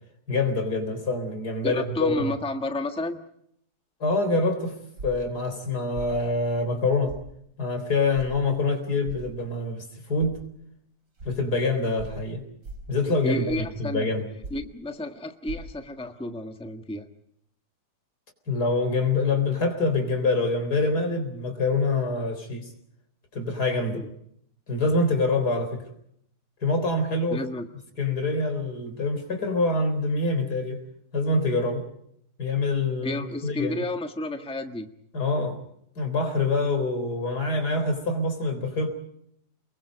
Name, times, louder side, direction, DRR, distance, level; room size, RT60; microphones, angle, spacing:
voice 1, 0.3-2.3 4.0-4.8 5.0-7.2 7.6-10.4 11.2-12.4 12.9-14.2 18.5-22.7 23.3-24.0 24.7-25.8 26.6-27.4 28.0-30.8 31.1-31.8 32.4-33.8 35.1-35.6 36.0-38.9, left 3 dB, 70° left, 7 dB, 4.4 m, -25 dB
voice 2, 1.6-3.2 13.2-14.1 14.5-17.1 23.9-24.0 27.3-27.7 33.0-34.9, left 1 dB, 5° left, 6 dB, 1.4 m, -31 dB
sound 1, 5.0-5.3 5.9-6.2 7.1-7.3 8.1-8.3 9.0-9.3 10.2-10.3 11.2-11.3 12.0-12.2 12.6-12.9 13.5-13.8 14.4-14.7 15.4-15.6, right 3 dB, 85° right, 5.1 m, -38 dB
30.0 x 22.0 x 5.2 m, 0.71 s
omnidirectional pair, 1.7 m